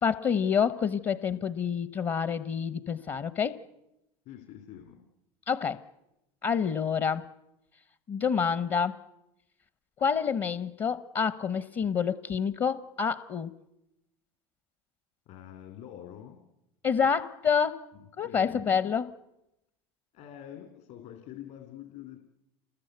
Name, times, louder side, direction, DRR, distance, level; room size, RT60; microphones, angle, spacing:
voice 1, 0.0-3.6 5.5-5.8 6.4-7.3 8.1-9.0 10.0-13.5 16.8-17.9 18.2-19.1, left 6 dB, 35° left, 0.9 m, -28 dB
voice 2, 4.2-5.0 15.3-16.4 17.9-18.7 20.1-22.2, left 10 dB, 60° left, 3.1 m, -46 dB
28.0 x 21.0 x 8.0 m
supercardioid pair, 105°, 15 cm